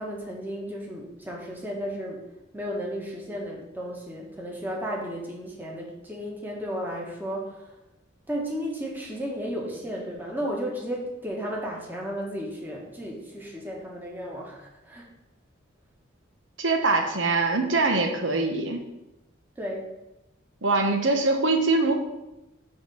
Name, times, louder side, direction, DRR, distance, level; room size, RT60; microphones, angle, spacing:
voice 1, 0.0-2.2 2.5-7.7 8.3-15.1 19.6-19.9, equal, 10° right, -2 dB, 1.5 m, -34 dB
voice 2, 16.6-18.8 20.6-22.0, right 3 dB, 70° right, 4 dB, 1.1 m, -23 dB
7.7 x 3.8 x 6.2 m, 0.97 s
head